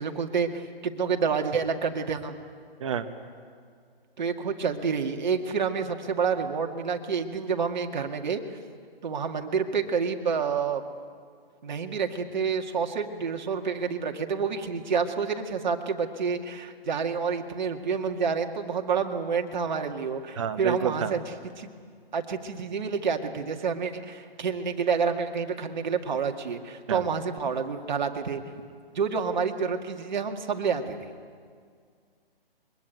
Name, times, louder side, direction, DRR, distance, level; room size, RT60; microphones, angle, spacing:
voice 1, 0.0-2.4 4.2-8.4 9.0-10.8 11.6-21.2 21.6-21.7 22.1-28.4 28.9-31.1, right 6 dB, 50° right, 4 dB, 2.1 m, -28 dB
voice 2, 20.4-21.1 26.9-27.0, right 7 dB, 30° right, 7 dB, 1.4 m, -29 dB
25.5 x 22.5 x 9.2 m, 2.1 s
hypercardioid pair, 170°, 30 cm